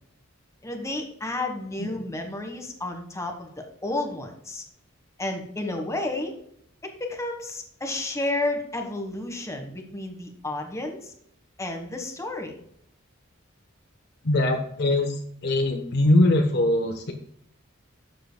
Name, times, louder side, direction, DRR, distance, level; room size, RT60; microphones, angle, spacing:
voice 1, 0.6-4.6 5.2-6.3 6.8-11.1 11.6-12.6, left 2 dB, 15° left, 4 dB, 1.4 m, -31 dB
voice 2, 14.2-15.1 15.4-17.1, left 1 dB, 55° left, 3 dB, 1.0 m, -22 dB
12.0 x 7.7 x 2.2 m, 0.68 s
head